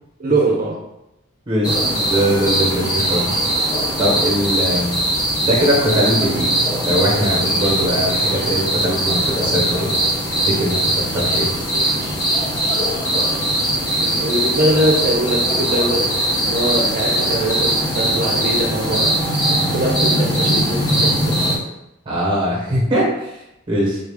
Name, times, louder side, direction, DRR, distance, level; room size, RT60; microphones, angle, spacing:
voice 1, 0.2-0.8 13.4-16.1 16.4-19.2 19.7-21.4, right 1 dB, 45° right, -1 dB, 0.6 m, -22 dB
voice 2, 1.5-3.3 4.0-4.9 5.4-10.0 10.3-11.5 22.1-23.4 23.7-24.0, equal, 25° right, -4 dB, 0.9 m, -21 dB
sound 1, 1.6-21.6, right 1 dB, 20° left, 0.6 m, -20 dB
4.0 x 2.4 x 3.4 m, 0.86 s
head